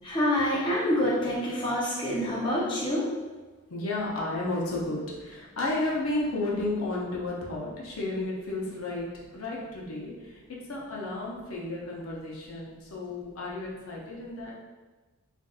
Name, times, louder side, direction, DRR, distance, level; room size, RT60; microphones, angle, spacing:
voice 1, 0.0-3.1, left 1 dB, 20° left, -7 dB, 0.6 m, -26 dB
voice 2, 3.7-14.5, left 2 dB, 70° left, -4 dB, 0.7 m, -32 dB
3.9 x 2.5 x 2.3 m, 1.2 s
head